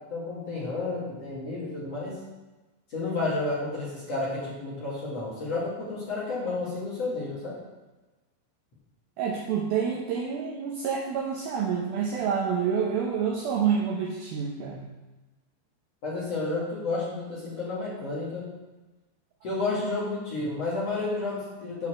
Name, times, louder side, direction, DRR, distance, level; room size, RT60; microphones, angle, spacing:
voice 1, 0.1-2.2 2.9-7.5 16.0-18.5 19.4-21.9, left 3 dB, 40° left, -7 dB, 2.6 m, -31 dB
voice 2, 9.2-14.9, right 7 dB, 80° right, -1 dB, 2.2 m, -28 dB
8.5 x 5.8 x 6.3 m, 1.2 s
omnidirectional pair, 5.4 m